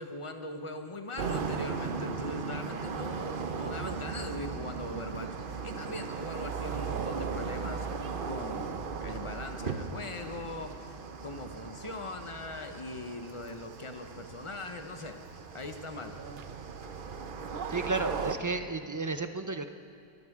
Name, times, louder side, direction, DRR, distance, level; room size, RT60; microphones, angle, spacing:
voice 1, 0.0-11.0 11.2-15.2 15.5-16.2, left 2 dB, 30° left, 6 dB, 0.9 m, -41 dB
sound 1, 1.2-18.4, right 5 dB, 60° right, 0.9 m, -37 dB
voice 2, 17.7-19.7, right 3 dB, 25° right, 8 dB, 0.4 m, -33 dB
23.0 x 13.5 x 3.6 m, 2.5 s
omnidirectional pair, 1.1 m